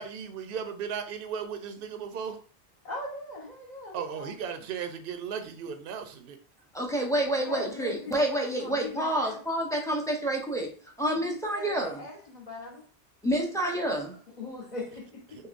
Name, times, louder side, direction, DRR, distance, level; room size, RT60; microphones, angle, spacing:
voice 1, 0.0-2.4 3.9-6.4, right 7 dB, 65° right, 0.8 m, -36 dB
voice 2, 2.8-4.3 7.1-9.4 11.1-12.8 13.8-15.4, left 2 dB, 45° left, 1.3 m, -40 dB
voice 3, 6.7-10.7 11.0-12.0 13.2-14.1, right 1 dB, 5° left, 0.7 m, -28 dB
6.6 x 2.3 x 2.5 m
omnidirectional pair, 1.1 m